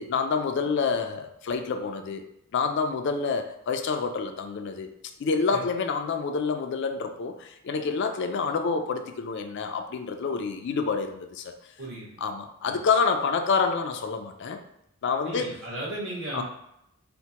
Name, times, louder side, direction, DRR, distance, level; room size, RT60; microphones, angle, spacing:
voice 1, 0.0-2.2 2.5-4.9 5.2-11.5 12.2-14.6 15.0-15.5 16.3-16.4, left 5 dB, 50° left, 6 dB, 0.3 m, -28 dB
voice 2, 11.8-12.2 12.6-12.8 15.2-16.4, right 1 dB, 55° right, -4 dB, 1.1 m, -35 dB
4.3 x 2.1 x 2.8 m, 0.80 s
head